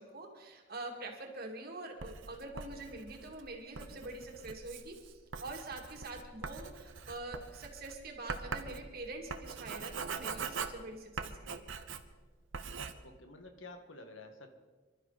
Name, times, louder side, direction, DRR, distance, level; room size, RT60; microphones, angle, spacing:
voice 1, 0.0-11.6, right 2 dB, 55° right, 2 dB, 2.5 m, -45 dB
Writing, 2.0-12.2 12.5-12.9, right 5 dB, 80° right, 1.0 m, -43 dB
voice 2, 13.0-14.5, left 2 dB, 85° left, 6 dB, 1.8 m, -50 dB
25.0 x 12.5 x 4.2 m, 1.4 s
head